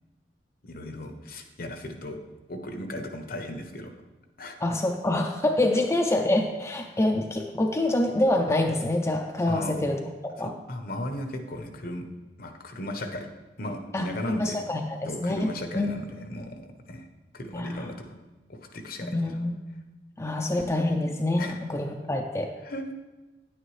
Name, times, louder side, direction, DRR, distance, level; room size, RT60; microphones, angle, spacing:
voice 1, 0.6-2.2 2.5-3.9 4.4-4.6 9.5-9.7 10.4-12.1 12.4-13.3 13.6-14.6 15.1-17.1 17.3-17.9 18.5-19.2 20.5-20.6 21.4-21.6 22.6-22.9, left 1 dB, 55° left, 5 dB, 0.8 m, -36 dB
voice 2, 4.6-10.5 13.9-15.5 15.7-16.0 17.5-17.9 19.1-19.6 20.2-22.5, left 1 dB, 15° left, 2 dB, 0.4 m, -26 dB
9.7 x 9.1 x 3.2 m, 1.2 s
head